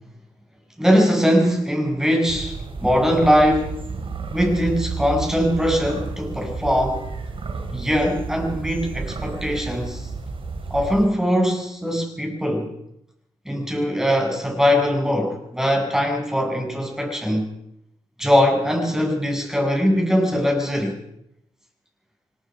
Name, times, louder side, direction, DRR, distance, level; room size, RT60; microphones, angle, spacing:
voice 1, 0.8-3.8 4.3-7.1 7.7-10.0 10.7-12.7 13.5-17.4 18.2-21.0, equal, 5° right, 2 dB, 7.7 m, -21 dB
sound 1, 2.3-11.1, right 4 dB, 50° right, 3.7 m, -32 dB
25.5 x 19.0 x 5.3 m, 0.77 s
supercardioid pair, 50°, 12 cm